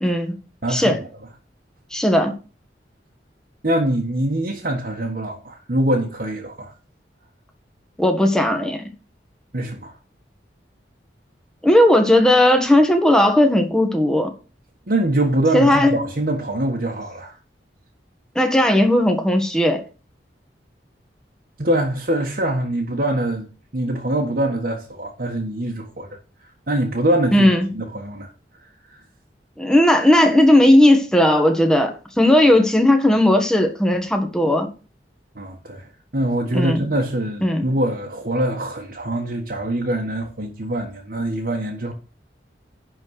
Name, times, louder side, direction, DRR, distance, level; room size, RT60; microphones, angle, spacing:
voice 1, 0.0-0.4 0.7-1.0 1.9-2.3 8.0-8.9 11.6-14.3 15.5-16.0 18.3-19.8 27.3-27.7 29.6-34.7 36.5-36.8 37.4-37.7, left 1 dB, 5° left, 1.4 m, -16 dB
voice 2, 0.6-1.0 3.6-6.7 9.5-9.9 14.9-17.4 21.6-23.5 23.7-26.1 26.7-28.3 28.9-29.0 35.3-41.9, right 1 dB, 55° right, 1.5 m, -23 dB
11.0 x 4.3 x 6.5 m
head